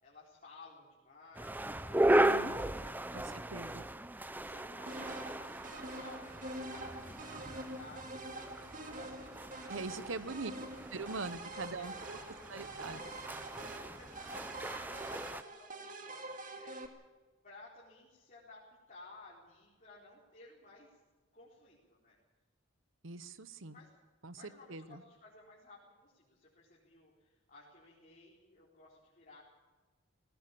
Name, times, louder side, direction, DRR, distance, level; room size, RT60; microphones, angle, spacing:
voice 1, 0.0-3.8 4.4-10.8 11.5-13.2 13.8-16.8 17.4-21.0 21.3-22.2 23.7-23.9 24.3-29.4, left 3 dB, 40° left, -6 dB, 4.5 m, -58 dB
sound 1, 1.3-15.4, right 1 dB, 10° right, 0.6 m, -36 dB
voice 2, 2.1-2.6 3.1-3.9 9.7-10.5 10.9-12.2 12.5-13.0 23.0-23.8 24.2-25.0, right 3 dB, 65° right, 14 dB, 1.1 m, -43 dB
sound 2, 4.9-16.9, right 2 dB, 40° right, 2.2 m, -46 dB
19.0 x 18.0 x 8.5 m, 1.3 s
head